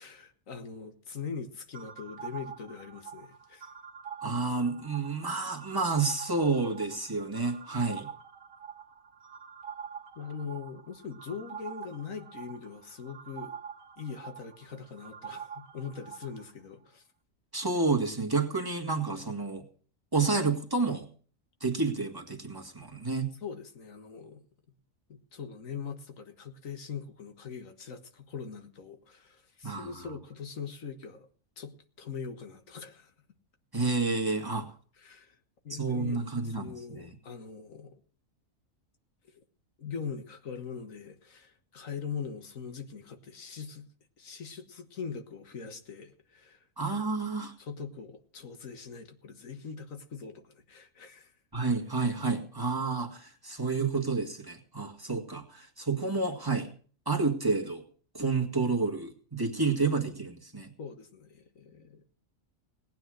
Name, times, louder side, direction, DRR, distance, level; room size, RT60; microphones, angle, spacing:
voice 1, 0.0-3.7 10.2-13.5 14.0-17.0 23.4-24.4 25.1-31.3 31.6-33.1 35.0-35.4 35.6-38.0 39.3-39.4 39.8-43.9 44.2-46.6 47.6-51.3 60.8-62.0, left 6 dB, 85° left, 1.8 m, -42 dB
sound 1, 1.7-16.5, right 7 dB, 85° right, 1.5 m, -45 dB
voice 2, 4.2-8.1 17.5-19.6 20.1-21.1 21.6-23.3 29.6-29.9 33.7-34.7 35.7-37.2 46.8-47.5 51.5-56.7 57.1-57.8 58.1-60.7, right 4 dB, 15° right, 1.9 m, -30 dB
18.5 x 9.1 x 6.4 m
omnidirectional pair, 1.4 m